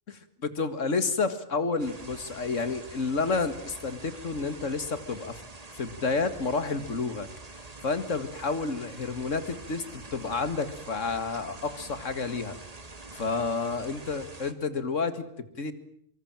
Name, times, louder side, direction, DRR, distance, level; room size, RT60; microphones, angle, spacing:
voice 1, 0.1-5.4 5.7-7.3 7.8-12.6 13.1-15.7, left 4 dB, 65° left, 12 dB, 2.3 m, -30 dB
sound 1, 1.8-14.5, right 2 dB, 30° right, 1.8 m, -46 dB
24.5 x 24.0 x 9.0 m, 0.70 s
omnidirectional pair, 1.4 m